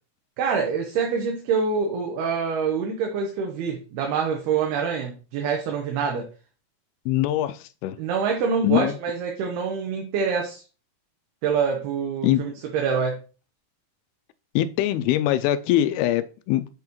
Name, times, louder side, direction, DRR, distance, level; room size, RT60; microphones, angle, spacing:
voice 1, 0.4-6.3 8.0-10.6 11.4-13.2, right 6 dB, 80° right, 3.0 m, -25 dB
voice 2, 7.1-8.0 8.6-8.9 12.2-12.4 14.6-16.7, left 13 dB, 80° left, 2.4 m, -23 dB
7.8 x 5.8 x 3.0 m
omnidirectional pair, 4.6 m